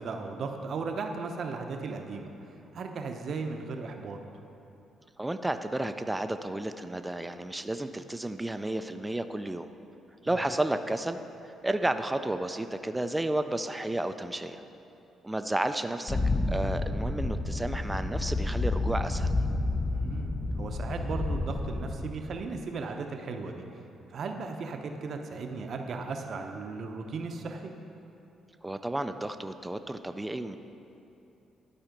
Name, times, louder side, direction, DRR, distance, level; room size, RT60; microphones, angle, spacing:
voice 1, 0.0-2.3 2.7-4.2 10.3-10.4 19.9-23.6 24.1-27.7, right 4 dB, 60° right, 4 dB, 0.7 m, -36 dB
voice 2, 5.2-9.7 10.2-11.2 11.4-14.6 15.2-16.2 16.5-19.3 28.6-30.6, right 1 dB, 10° right, 9 dB, 0.4 m, -32 dB
sound 1, 16.1-22.4, left 2 dB, 30° left, 0.6 m, -30 dB
12.0 x 4.3 x 5.1 m, 2.8 s
cardioid pair, 90°, 0 cm